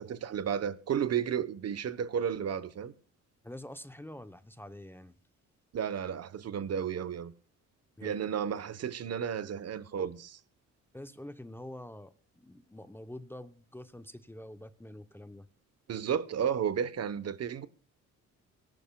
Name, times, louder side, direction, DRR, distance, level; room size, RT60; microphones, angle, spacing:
voice 1, 0.0-2.9 5.7-7.3 8.0-10.4 15.9-17.7, right 8 dB, 55° right, 1.0 m, -33 dB
voice 2, 3.4-5.1 8.0-8.2 10.9-15.5, left 1 dB, 5° left, 0.7 m, -46 dB
24.5 x 11.0 x 2.3 m
cardioid pair, 90°, 30 cm